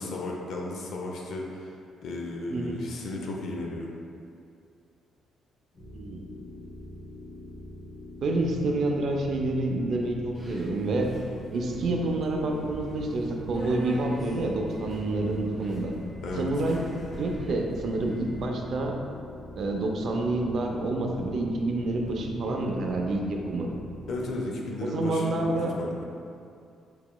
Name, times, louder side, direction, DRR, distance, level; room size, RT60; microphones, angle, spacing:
voice 1, 0.0-1.7 2.0-3.9 16.2-16.5 24.1-26.0, left 2 dB, 70° left, -1 dB, 0.5 m, -34 dB
sound 1, 5.7-24.3, left 1 dB, 45° left, 1.0 m, -44 dB
voice 2, 5.9-6.3 8.2-11.1 11.5-15.9 16.4-16.9 17.2-18.9 19.6-23.7 24.8-25.7, right 2 dB, 60° right, 1 dB, 0.4 m, -28 dB
Subway metro underground, 10.3-18.5, right 1 dB, 10° left, 1.1 m, -41 dB
4.7 x 2.8 x 2.2 m, 2.4 s
cardioid pair, 90°, 0 cm